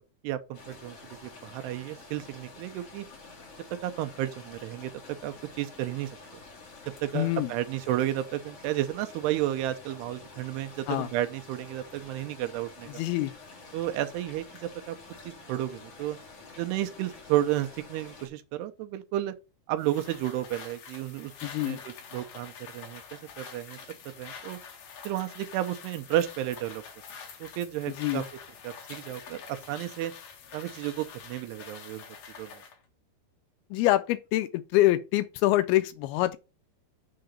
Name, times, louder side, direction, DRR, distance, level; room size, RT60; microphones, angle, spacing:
voice 1, 0.2-1.0 1.2-3.1 3.8-4.9 5.2-6.2 7.0-13.0 13.7-15.0 15.2-16.2 16.6-19.3 19.7-23.8 24.1-24.6 25.0-26.8 27.4-28.2 28.6-30.1 30.5-32.1 32.4-32.6, right 13 dB, 90° right, 2.9 m, -32 dB
sound 1, 0.5-18.3, left 3 dB, 45° left, 2.7 m, -49 dB
voice 2, 7.1-7.5 10.9-11.1 13.0-13.3 21.4-21.8 28.0-28.2 33.7-36.4, left 16 dB, 80° left, 2.3 m, -25 dB
sound 2, 19.8-32.8, left 6 dB, 60° left, 2.0 m, -46 dB
6.9 x 3.9 x 6.4 m
omnidirectional pair, 4.6 m